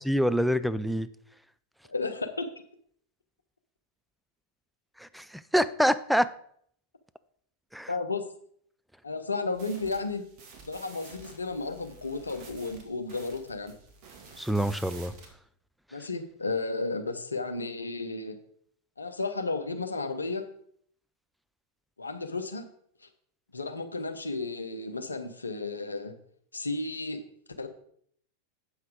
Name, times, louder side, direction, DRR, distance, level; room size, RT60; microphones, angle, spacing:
voice 1, 0.1-1.1 5.0-6.3 7.7-7.9 14.4-15.1, equal, ahead, 13 dB, 0.3 m, -26 dB
voice 2, 1.9-2.5 7.9-8.3 9.0-10.2 10.7-13.8 15.9-18.4 19.0-20.4 22.0-22.6 23.5-26.1 26.5-27.2 27.6-27.7, left 3 dB, 80° left, 8 dB, 0.8 m, -33 dB
sound 1, 9.5-15.3, right 4 dB, 40° right, 2.1 m, -50 dB
8.0 x 5.8 x 5.0 m, 0.64 s
figure-of-eight pair, 90°, 0 cm